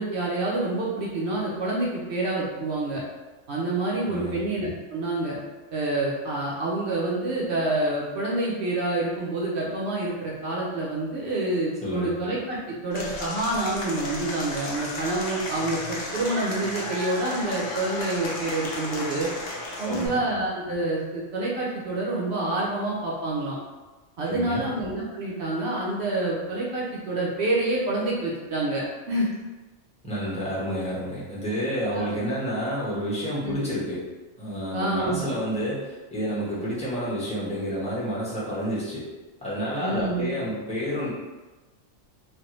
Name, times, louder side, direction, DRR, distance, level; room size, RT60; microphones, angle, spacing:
voice 1, 0.0-3.0 3.5-5.4 5.7-19.3 19.8-23.6 24.2-29.3 31.9-32.2 33.4-33.5 34.7-35.2 39.8-40.3, right 2 dB, 60° right, -4 dB, 0.8 m, -27 dB
voice 2, 11.8-12.1 19.8-20.2 24.2-24.6 30.0-34.0 34.4-39.0 39.4-41.1, equal, 5° left, -9 dB, 0.8 m, -29 dB
Applause / Crowd, 12.9-20.1, left 2 dB, 65° left, 0.8 m, -34 dB
3.2 x 2.2 x 3.0 m, 1.2 s
omnidirectional pair, 1.4 m